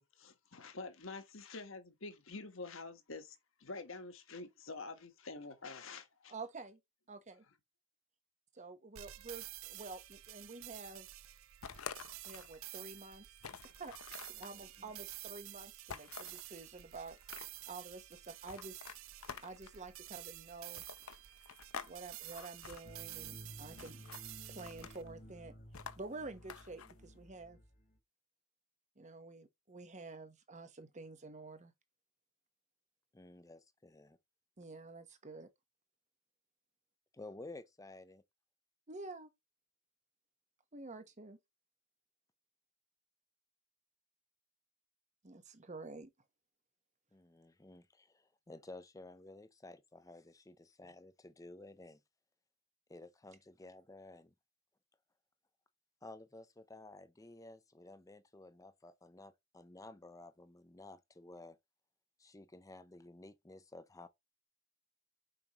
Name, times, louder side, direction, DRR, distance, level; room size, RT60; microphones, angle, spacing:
voice 1, 0.0-6.3, left 3 dB, 65° left, 1.4 m, -47 dB
voice 2, 6.3-6.8 7.1-7.4 8.5-11.1 12.2-13.4 13.6-13.9 14.4-18.8 19.4-20.8 21.8-24.0 24.5-27.6 29.0-31.7 34.6-35.5 38.9-39.3 40.7-41.4 45.2-46.1, right 3 dB, 35° right, 1.1 m, -49 dB
sound 1, 9.0-25.0, right 16 dB, 70° right, 0.5 m, -51 dB
sound 2, 11.6-12.6 13.0-13.1 13.4-14.5 15.9-16.4 17.0-17.7 18.4-19.8 20.7-21.9 22.2-22.8 23.8-24.2 24.6-25.1 25.7-26.9, left 6 dB, 80° left, 0.7 m, -48 dB
voice 3, 14.4-14.9 33.1-34.2 37.1-38.2 47.1-52.0 52.9-54.3 56.0-61.6 62.2-64.1, left 2 dB, 15° left, 0.6 m, -54 dB
sound 3, 22.8-28.0, equal, 45° left, 1.4 m, -55 dB
7.0 x 5.2 x 3.0 m
head